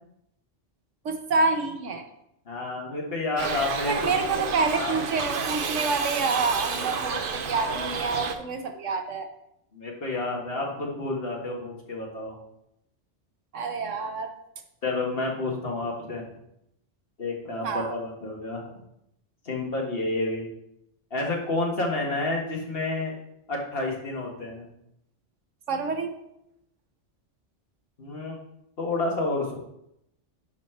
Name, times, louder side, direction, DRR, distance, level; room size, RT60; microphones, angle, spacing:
voice 1, 1.0-2.0 3.8-9.3 13.5-14.3 17.6-17.9 25.7-26.1, right 4 dB, 90° right, 5 dB, 1.4 m, -27 dB
voice 2, 2.5-4.1 4.7-5.0 9.7-12.3 14.8-16.2 17.2-18.7 19.5-20.4 21.1-23.1 23.5-24.7 28.0-28.4 28.8-29.5, left 2 dB, 55° left, -1 dB, 1.9 m, -29 dB
Shout / Livestock farm animals working animals, 3.4-8.4, right 5 dB, 50° right, 0.9 m, -30 dB
11.0 x 4.2 x 4.6 m, 0.79 s
omnidirectional pair, 1.2 m